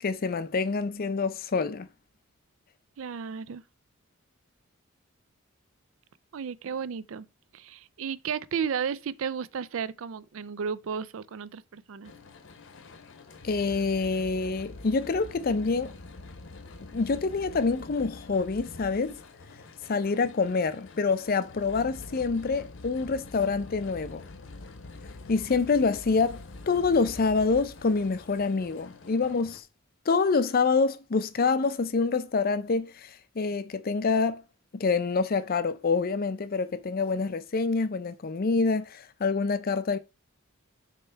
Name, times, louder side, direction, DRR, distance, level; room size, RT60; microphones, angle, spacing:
voice 1, 0.0-1.9 13.4-15.9 16.9-19.2 19.8-24.3 25.3-29.6 30.1-34.4 34.7-40.0, left 4 dB, 45° left, 0.5 m, -26 dB
voice 2, 3.0-3.6 6.3-7.3 7.5-12.1, right 6 dB, 65° right, 0.4 m, -33 dB
sound 1, 12.0-29.6, left 2 dB, 60° left, 0.8 m, -46 dB
6.7 x 3.1 x 4.5 m
head